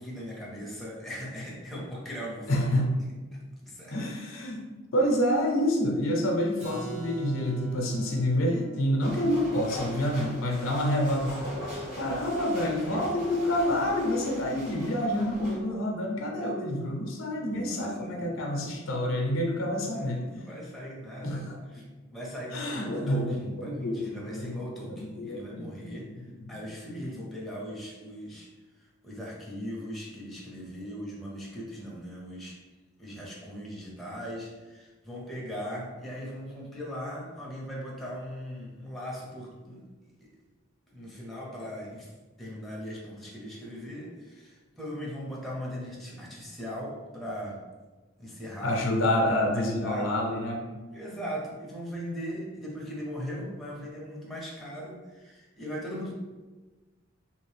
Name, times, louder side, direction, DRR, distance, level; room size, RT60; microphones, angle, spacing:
voice 1, 0.0-2.7 3.3-4.0 17.3-18.4 18.9-19.0 20.0-21.4 21.7-21.8 22.1-26.1 26.5-28.5 28.8-32.6 33.0-40.1 40.9-42.1 42.4-47.6 48.2-48.8 49.5-50.1 50.9-56.1, equal, ahead, -5 dB, 0.6 m, -39 dB
voice 2, 2.5-2.9 3.9-4.6 4.9-11.4 11.7-20.2 21.2-21.8 22.5-24.6 24.9-26.4 48.6-50.6, left 1 dB, 80° left, 1 dB, 0.6 m, -28 dB
Keyboard (musical), 6.6-12.2, right 2 dB, 35° right, 0.9 m, -46 dB
sound 1, 9.0-15.6, equal, 55° right, 1.2 m, -40 dB
2.8 x 2.5 x 3.2 m, 1.2 s
head